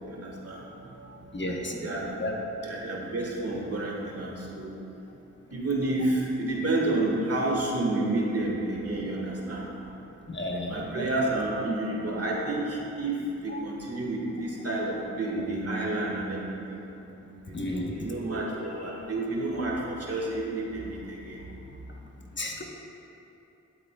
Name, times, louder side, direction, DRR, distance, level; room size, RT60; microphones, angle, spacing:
voice 1, 0.0-2.4 2.6-4.7 5.5-10.0 10.5-16.8 17.2-21.4, right 2 dB, 50° right, -2 dB, 1.6 m, -30 dB
voice 2, 1.3-1.7 2.2-2.3 10.3-10.8 17.5-17.9 22.4-22.6, left 1 dB, 40° left, 1 dB, 1.0 m, -32 dB
11.5 x 8.0 x 2.3 m, 2.9 s
cardioid pair, 50°, 30 cm